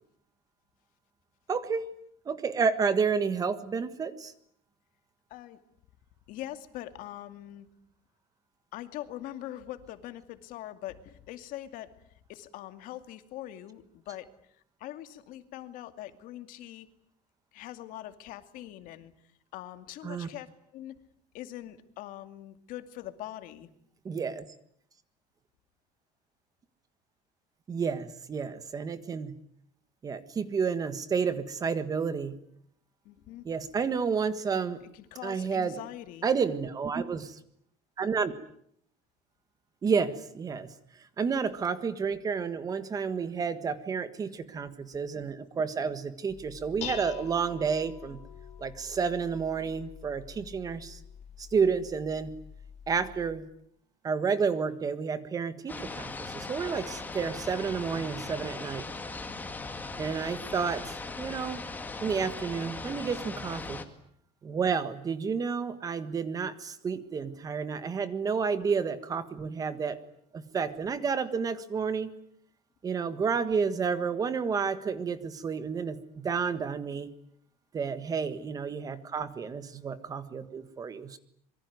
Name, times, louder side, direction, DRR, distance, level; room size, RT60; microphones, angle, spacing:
voice 1, 1.5-1.9 2.2-4.3 20.0-20.3 24.0-24.4 27.7-29.3 30.0-32.4 33.4-34.8 35.2-35.8 36.2-37.4 38.0-38.3 39.8-40.7 41.2-48.2 48.6-51.0 51.4-52.3 52.9-53.5 54.0-58.8 60.0-61.6 62.0-63.8 64.4-70.0 70.3-72.1 72.8-77.1 77.7-81.2, right 5 dB, 20° right, 12 dB, 1.6 m, -30 dB
voice 2, 5.3-5.6 6.3-7.7 8.7-11.9 12.3-14.3 14.8-16.9 17.5-19.1 19.5-21.0 21.3-23.7 33.0-33.5 34.5-36.3, left 13 dB, 60° left, 10 dB, 2.4 m, -42 dB
Dishes pots and pans, 46.3-53.4, left 9 dB, 45° left, 3.8 m, -46 dB
sound 1, 55.7-63.8, left 3 dB, 10° left, 2.1 m, -39 dB
26.0 x 23.5 x 9.5 m, 0.68 s
cardioid pair, 175°, 16 cm